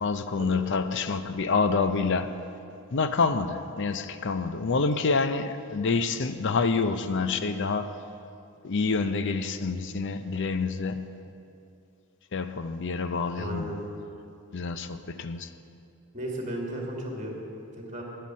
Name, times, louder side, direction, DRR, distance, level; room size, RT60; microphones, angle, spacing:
voice 1, 0.0-2.3 2.9-7.9 8.6-11.0 12.3-13.8 14.5-15.5, left 4 dB, 55° left, 0.5 m, -27 dB
voice 2, 13.4-13.8 16.1-17.4 17.8-18.0, right 1 dB, 35° right, 2.2 m, -34 dB
10.5 x 9.6 x 7.4 m
head